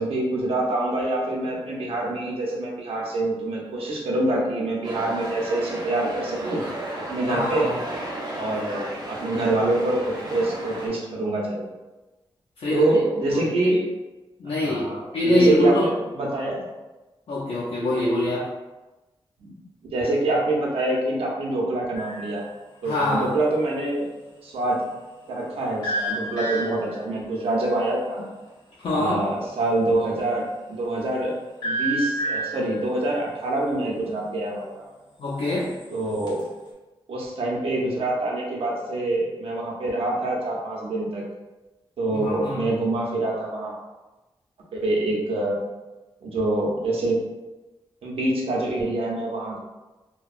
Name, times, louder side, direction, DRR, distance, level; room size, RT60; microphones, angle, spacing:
voice 1, 0.0-6.6 7.1-7.7 8.3-11.7 12.7-13.8 14.6-16.7 19.4-19.6 19.8-22.4 22.8-24.1 24.4-24.8 25.3-28.2 28.9-31.4 31.6-34.8 35.9-36.4 37.1-41.2 42.0-43.8 44.8-45.6 46.2-47.2 48.0-49.6, right 2 dB, 90° right, -3 dB, 0.6 m, -25 dB
sound 1, 4.8-10.9, right 1 dB, 40° right, 0.6 m, -34 dB
voice 2, 7.3-7.7 12.6-12.9 13.3-13.7 14.4-14.9 15.1-15.9 17.3-18.5 22.8-23.3 28.8-29.1 35.2-35.7 42.1-42.7, left 1 dB, 80° left, -8 dB, 0.5 m, -24 dB
sound 2, 21.9-22.5 25.8-27.0 31.6-32.8 35.5-36.4, right 2 dB, 45° left, 0.9 m, -29 dB
2.7 x 2.2 x 2.4 m, 1.1 s
wide cardioid pair, 100°, 10 cm